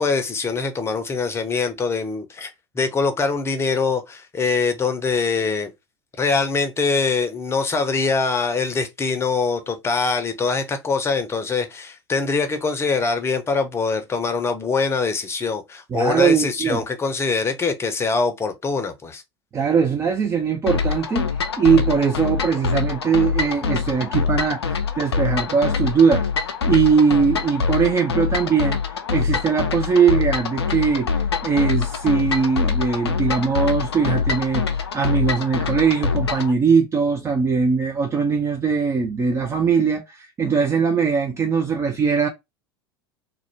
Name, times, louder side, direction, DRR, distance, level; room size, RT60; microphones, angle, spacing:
voice 1, 0.0-2.5 2.7-5.7 6.2-19.2, left 4 dB, 20° left, 0.6 m, -23 dB
voice 2, 15.9-16.8 19.5-28.8 29.1-31.1 31.4-42.3, right 6 dB, 20° right, 0.4 m, -20 dB
sound 1, 20.7-36.5, left 5 dB, 80° left, 0.4 m, -24 dB
2.4 x 2.1 x 3.1 m
figure-of-eight pair, 80°, 13 cm